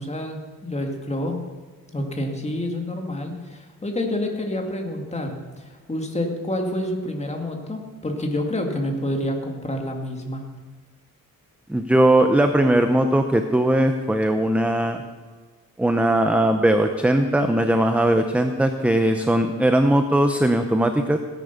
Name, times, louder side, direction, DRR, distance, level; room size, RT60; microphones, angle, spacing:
voice 1, 0.0-1.4 1.9-10.5, left 1 dB, 20° left, 2 dB, 2.3 m, -28 dB
voice 2, 11.7-15.0 15.8-21.2, right 1 dB, 5° right, 6 dB, 0.7 m, -19 dB
17.0 x 10.5 x 7.0 m, 1.4 s
wide cardioid pair, 150°, 33 cm